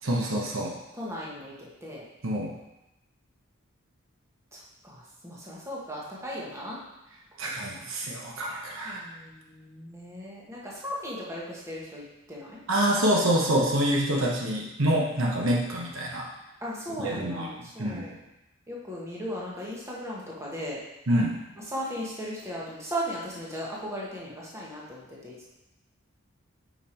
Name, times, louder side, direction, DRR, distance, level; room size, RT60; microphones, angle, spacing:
voice 1, 0.0-0.7 2.2-2.5 7.4-9.0 12.7-16.3 17.0-17.5 17.8-18.1 21.1-21.4, right 1 dB, 70° right, -1 dB, 1.0 m, -26 dB
voice 2, 0.9-2.0 4.5-6.8 8.8-12.6 16.6-18.1 18.7-20.8 21.6-25.5, equal, 15° right, -5 dB, 1.2 m, -37 dB
5.5 x 4.7 x 4.4 m, 0.93 s
head